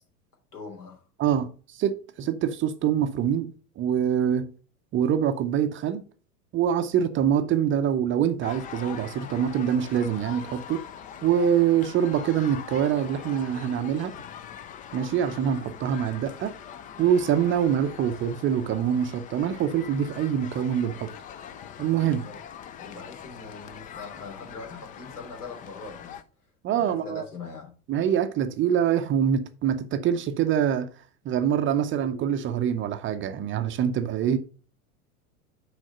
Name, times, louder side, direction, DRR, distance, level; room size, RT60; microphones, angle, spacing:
voice 1, 0.5-1.0 22.2-22.4 22.8-26.2 26.8-27.8, left 4 dB, 80° left, 3.2 m, -41 dB
voice 2, 1.2-4.5 4.9-6.0 6.5-10.8 11.2-14.1 14.9-16.5 17.0-21.1 21.8-22.3 26.6-27.2 27.9-30.9 31.2-34.4, right 9 dB, 25° right, 0.6 m, -25 dB
sound 1, 8.4-26.2, left 8 dB, 20° left, 0.4 m, -42 dB
6.2 x 4.9 x 5.5 m
figure-of-eight pair, 90°, 45 cm